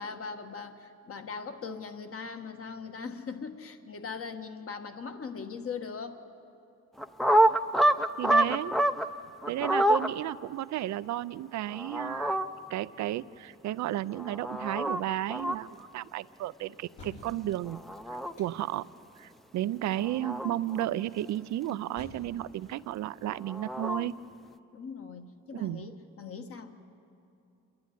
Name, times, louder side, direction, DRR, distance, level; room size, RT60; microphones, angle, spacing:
voice 1, 0.0-6.2 24.7-26.8, left 5 dB, 50° left, 7 dB, 1.6 m, -40 dB
sound 1, 7.0-9.1 9.4-10.1 11.7-12.5 14.1-15.0 15.3-15.6 17.7-18.3 19.9-20.9 23.3-24.1, right 1 dB, ahead, 0.6 m, -26 dB
voice 2, 8.2-8.8 9.5-12.4 12.7-17.8 18.1-18.9 19.2-24.1 25.5-25.9, right 13 dB, 65° right, 15 dB, 0.5 m, -33 dB
sound 2, 17.0-17.6 18.4-18.9 19.6-19.8 20.1-20.2 22.0-22.2, left 2 dB, 75° left, 4.9 m, -48 dB
28.0 x 11.5 x 9.8 m, 2.7 s
cardioid pair, 90°, 30 cm